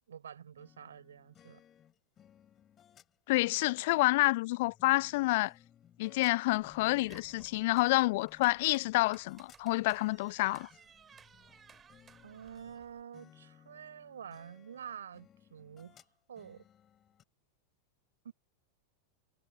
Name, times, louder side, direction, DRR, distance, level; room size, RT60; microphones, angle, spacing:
voice 1, 0.1-1.6 12.2-16.0 16.3-16.6 18.2-18.3, right 8 dB, 65° right, 5.7 m, -48 dB
sound 1, 0.6-12.8 13.1-17.2, left 10 dB, 25° left, 5.5 m, -62 dB
voice 2, 3.3-5.5 6.0-10.7, left 21 dB, 50° left, 0.3 m, -28 dB
sound 2, 6.5-13.0, right 7 dB, 20° right, 6.0 m, -60 dB
figure-of-eight pair, 90°, 0 cm